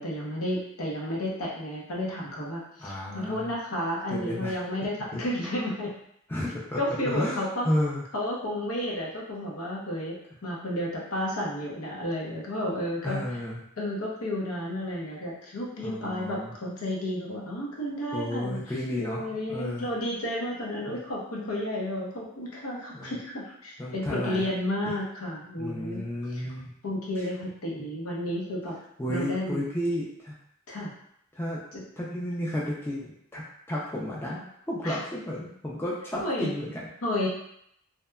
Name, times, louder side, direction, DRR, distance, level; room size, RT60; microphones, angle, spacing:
voice 1, 0.0-5.9 6.8-7.7 8.1-10.2 10.4-13.2 13.8-26.0 26.3-26.5 26.8-28.8 29.1-29.6 30.7-30.9 31.7-31.8 34.8-35.0 36.2-36.5 37.0-37.3, left 1 dB, 90° left, -3 dB, 0.7 m, -32 dB
voice 2, 2.8-3.5 4.1-4.6 5.1-5.2 6.3-6.8 7.1-8.1 13.0-13.6 15.8-16.5 18.1-19.9 20.9-21.0 22.9-23.2 23.8-24.5 24.8-25.0 25.6-26.7 27.2-27.3 29.0-30.4 31.3-31.6 32.0-36.8, left 1 dB, 10° left, -5 dB, 0.3 m, -32 dB
2.8 x 2.2 x 2.2 m, 0.73 s
head